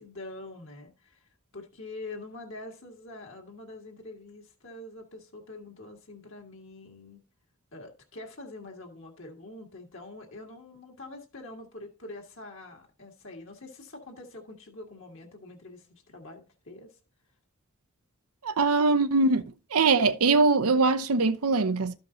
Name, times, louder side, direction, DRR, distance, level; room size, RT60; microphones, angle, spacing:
voice 1, 0.0-7.2 7.7-16.9, left 2 dB, 60° left, 1.7 m, -45 dB
voice 2, 18.4-19.4 19.7-21.9, right 3 dB, 85° right, 0.7 m, -22 dB
12.5 x 5.3 x 3.8 m
head